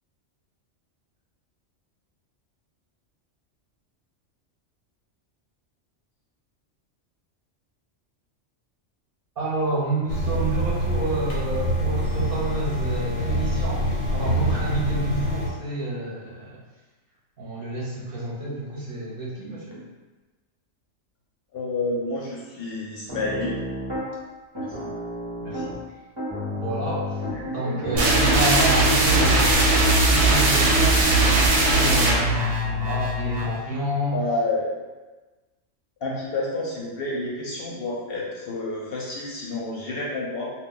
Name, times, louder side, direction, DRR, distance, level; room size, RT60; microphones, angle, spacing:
voice 1, 9.4-16.6 17.4-19.8 25.4-25.7 26.6-27.1 27.4-31.0 31.6-34.2, right 2 dB, 55° right, -6 dB, 0.8 m, -29 dB
sound 1, 10.1-15.5, equal, 90° left, 1.0 m, -25 dB
voice 2, 21.5-23.6 24.5-24.9 27.3-27.8 34.1-34.7 36.0-40.5, left 2 dB, 60° left, -4 dB, 0.7 m, -29 dB
Piano, 23.1-24.1 24.5-25.8 26.2-29.6, right 1 dB, 30° right, 0.6 m, -31 dB
sound 2, 27.9-33.6, right 2 dB, 90° right, 1.0 m, -19 dB
2.2 x 2.1 x 3.7 m, 1.2 s
omnidirectional pair, 1.2 m